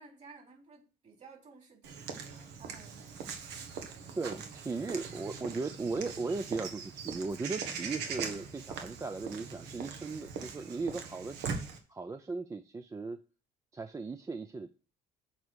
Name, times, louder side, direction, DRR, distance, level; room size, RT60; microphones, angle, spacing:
voice 1, 0.0-3.1, right 4 dB, 40° right, 0 dB, 3.8 m, -55 dB
Walk footsteps / Bird vocalization bird call bird song, 1.8-11.8, right 6 dB, 80° right, 1.5 m, -41 dB
voice 2, 4.2-11.4 11.9-13.2 13.7-14.7, right 3 dB, 20° right, 9 dB, 0.5 m, -37 dB
7.3 x 4.7 x 6.3 m, 0.36 s
cardioid pair, 110°, 17 cm